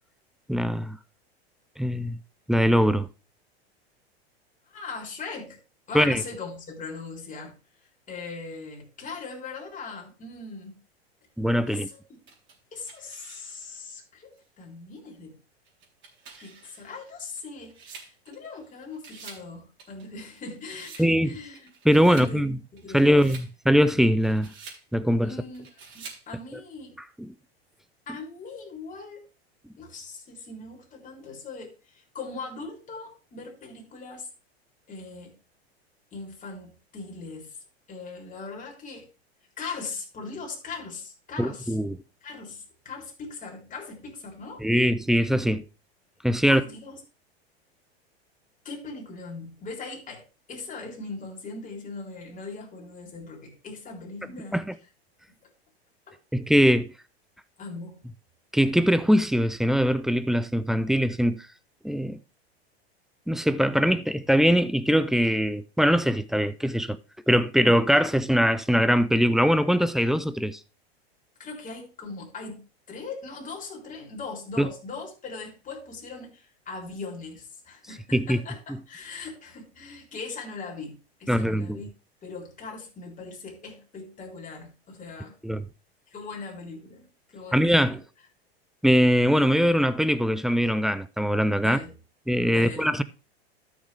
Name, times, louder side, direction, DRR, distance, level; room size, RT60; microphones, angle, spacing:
voice 1, 0.5-1.0 1.8-2.2 2.5-3.1 5.9-6.2 11.4-11.9 21.0-21.3 21.8-22.6 22.9-24.5 24.9-25.3 27.2-27.3 41.4-42.0 44.6-45.6 46.2-46.6 54.5-54.7 56.3-56.9 58.5-61.5 61.8-62.2 63.3-67.0 67.3-70.6 74.6-74.7 78.1-78.4 81.3-81.8 85.4-85.6 87.5-88.0 88.8-91.8 92.3-93.0, equal, ahead, 0.4 m, -22 dB
voice 2, 4.7-5.6 5.9-7.6 8.1-10.8 11.7-12.0 12.7-15.4 16.4-21.7 22.1-23.3 25.2-25.7 25.9-27.0 28.1-29.3 29.8-34.3 34.9-35.4 36.1-37.6 37.9-39.1 39.6-41.8 42.2-44.7 45.5-45.6 46.4-47.0 48.6-54.6 55.3-55.5 56.1-56.2 57.6-58.0 71.4-81.9 82.2-85.4 86.1-88.0 91.6-92.0 92.5-93.0, left 4 dB, 25° left, 3.6 m, -40 dB
sound 1, 12.3-13.8 14.4-14.5 15.7-18.7 18.9-19.5 19.8-21.1 21.5-22.3 22.8-23.5 24.0-24.8 25.5-26.3, right 5 dB, 35° right, 3.8 m, -47 dB
13.0 x 6.5 x 3.4 m
hypercardioid pair, 100°, 32 cm